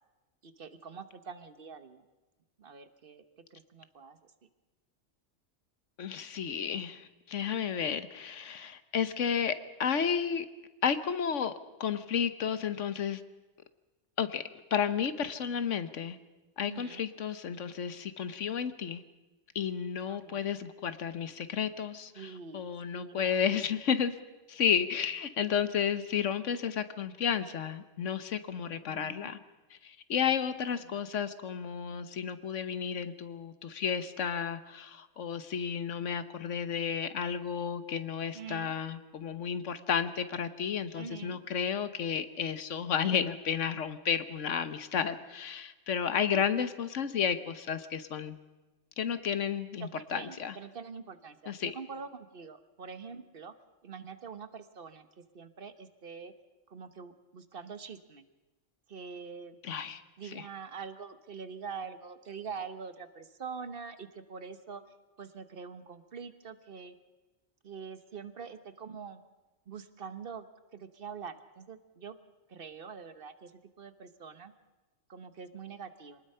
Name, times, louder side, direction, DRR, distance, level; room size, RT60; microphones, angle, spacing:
voice 1, 0.4-2.0 2.6-3.2 3.5-4.5 16.6-17.1 20.1-20.5 22.1-22.6 22.9-23.4 28.9-29.3 30.8-31.0 38.3-38.7 40.9-41.4 46.2-46.4 49.8-53.5 53.8-56.3 56.7-58.3 58.9-59.6 60.2-64.8 65.2-66.9 67.6-69.2 69.7-70.5 70.7-72.2 72.5-73.5 73.8-74.5 75.1-76.2, right 6 dB, 50° right, 11 dB, 1.3 m, -45 dB
voice 2, 6.0-10.4 10.8-11.5 11.8-13.2 14.2-14.4 14.7-16.2 16.6-19.0 19.5-24.1 24.5-29.4 29.8-48.4 49.0-50.5 51.5-51.7 59.6-60.0 60.3-60.4, left 7 dB, 75° left, 12 dB, 1.3 m, -32 dB
26.0 x 19.5 x 5.6 m, 1.1 s
omnidirectional pair, 1.3 m